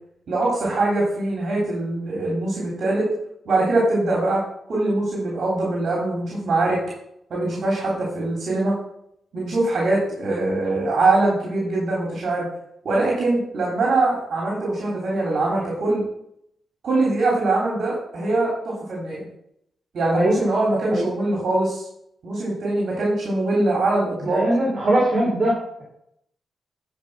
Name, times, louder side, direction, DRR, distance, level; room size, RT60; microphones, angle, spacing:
voice 1, 0.3-3.1 3.4-4.4 4.7-6.8 7.3-8.7 9.3-12.5 12.8-16.0 16.8-19.3 19.9-21.8 22.2-24.4, right 2 dB, 65° right, -4 dB, 3.3 m, -22 dB
voice 2, 24.2-25.8, right 1 dB, 40° right, -3 dB, 3.1 m, -21 dB
10.5 x 5.4 x 6.1 m, 0.75 s
cardioid pair, 85°, 0 cm